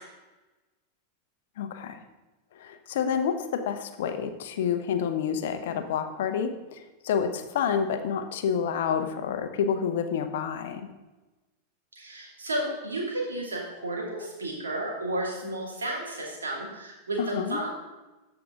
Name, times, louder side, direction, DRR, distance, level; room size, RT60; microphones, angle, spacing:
voice 1, 1.6-2.0 2.5-10.9 17.2-17.6, left 7 dB, 55° left, 8 dB, 0.8 m, -29 dB
voice 2, 11.9-17.7, right 1 dB, 70° right, -2 dB, 2.4 m, -32 dB
13.5 x 4.9 x 3.7 m, 1.1 s
figure-of-eight pair, 90°, 0 cm